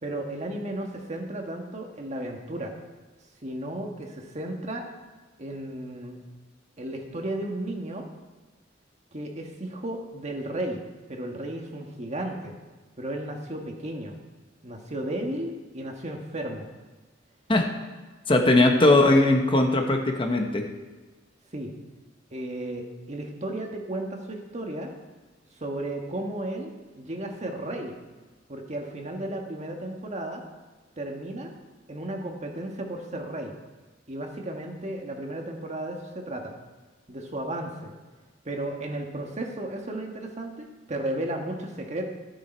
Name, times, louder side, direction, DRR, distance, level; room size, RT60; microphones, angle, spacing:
voice 1, 0.0-2.7 3.4-4.9 5.4-6.2 6.8-8.1 9.1-10.8 11.1-12.5 13.0-14.2 14.6-16.7 18.5-18.9 21.5-21.7 22.3-24.9 25.5-27.9 28.5-30.4 31.0-31.5 31.9-33.5 34.1-36.5 37.1-37.9 38.4-42.1, right 1 dB, 40° right, 2 dB, 1.5 m, -34 dB
voice 2, 18.3-20.6, left 2 dB, 30° left, 3 dB, 1.1 m, -19 dB
12.5 x 9.4 x 4.5 m, 1.3 s
head